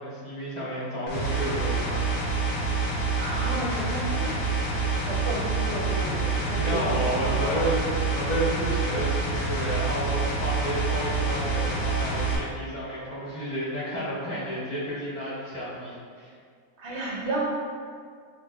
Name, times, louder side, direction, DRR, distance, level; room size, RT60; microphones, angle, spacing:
voice 1, 0.0-2.0 2.4-2.5 6.0-6.2 6.5-16.3, equal, 30° left, -9 dB, 1.1 m, -31 dB
sound 1, 1.1-12.4, right 3 dB, 70° left, 1.1 m, -27 dB
voice 2, 3.1-7.7 16.8-17.4, right 1 dB, 60° right, -3 dB, 0.8 m, -33 dB
6.2 x 2.7 x 2.2 m, 2.1 s
omnidirectional pair, 1.5 m